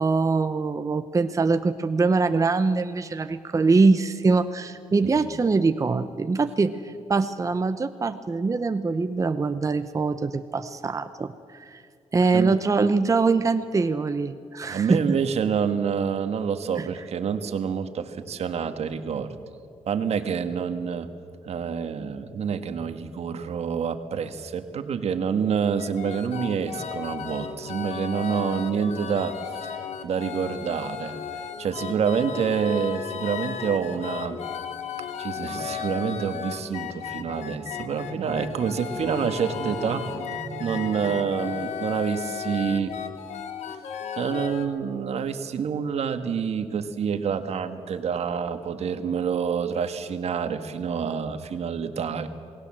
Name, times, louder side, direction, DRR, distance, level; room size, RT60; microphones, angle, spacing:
voice 1, 0.0-11.8 12.1-15.2, right 4 dB, 30° right, 9 dB, 0.8 m, -23 dB
voice 2, 14.6-19.3 19.9-21.1 21.4-31.2 31.6-34.4 35.2-42.9 43.7-43.8 44.2-52.3, right 7 dB, 70° right, 8 dB, 1.6 m, -27 dB
sound 1, 25.8-44.7, left 8 dB, 85° left, 1.7 m, -35 dB
28.0 x 19.5 x 7.6 m, 2.4 s
cardioid pair, 110°, 11 cm